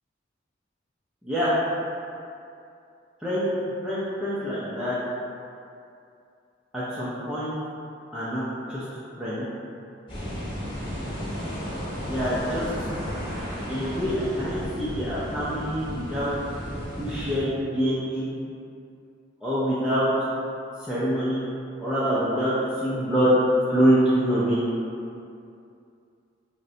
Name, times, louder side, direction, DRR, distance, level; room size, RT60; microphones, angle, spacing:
voice 1, 3.2-4.9 6.7-7.5 8.1-8.4 8.7-8.8 9.2-9.5 12.1-12.7 13.7-16.3 17.0-18.3 19.4-20.1 20.9-21.4 21.8-23.3 23.7-24.6, equal, 5° right, -13 dB, 0.4 m, -25 dB
sound 1, 10.1-17.4, equal, 25° left, 0.8 m, -33 dB
3.7 x 2.1 x 2.6 m, 2.6 s
head